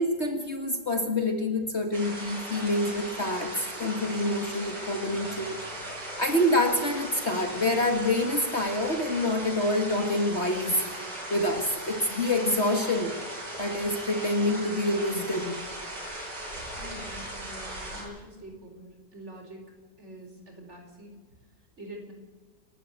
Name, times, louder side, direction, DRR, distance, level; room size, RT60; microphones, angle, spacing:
voice 1, 0.0-5.6 6.2-10.8 11.3-13.1 13.6-15.6, left 1 dB, 40° left, 5 dB, 2.0 m, -27 dB
sound 1, 1.9-18.0, right 1 dB, 70° right, 7.8 m, -38 dB
voice 2, 16.7-19.7 20.0-21.1 21.8-22.1, right 1 dB, 40° right, 2 dB, 4.8 m, -45 dB
28.0 x 12.5 x 8.0 m, 1.4 s
omnidirectional pair, 1.9 m